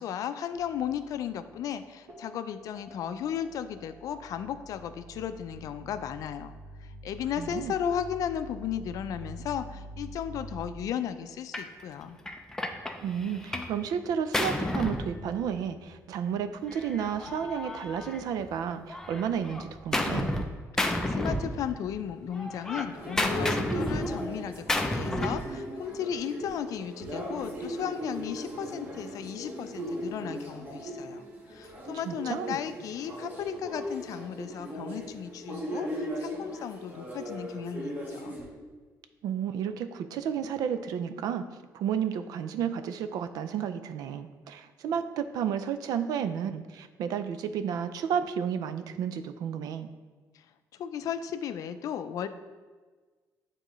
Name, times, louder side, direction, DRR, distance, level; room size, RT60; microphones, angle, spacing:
voice 1, 0.0-6.5 6.8-12.2 21.1-31.2 31.5-38.4 50.8-52.3, left 9 dB, 65° left, 10 dB, 0.4 m, -35 dB
sound 1, 0.5-1.8 2.1-10.7, right 1 dB, 60° right, 1.5 m, -46 dB
voice 2, 7.4-7.7 13.0-20.3 32.0-32.6 39.2-41.5 41.7-49.9, right 8 dB, 80° right, 11 dB, 0.4 m, -32 dB
Gunshot gunfire, 11.5-11.7 12.3-13.8 14.0-15.8 16.7-18.5 18.9-20.5 20.8-22.0 22.3-25.5, left 1 dB, 10° left, 0.5 m, -31 dB
sound 2, 22.9-38.5, equal, 30° right, 1.2 m, -38 dB
9.0 x 3.7 x 3.1 m, 1.4 s
cardioid pair, 135°, 6 cm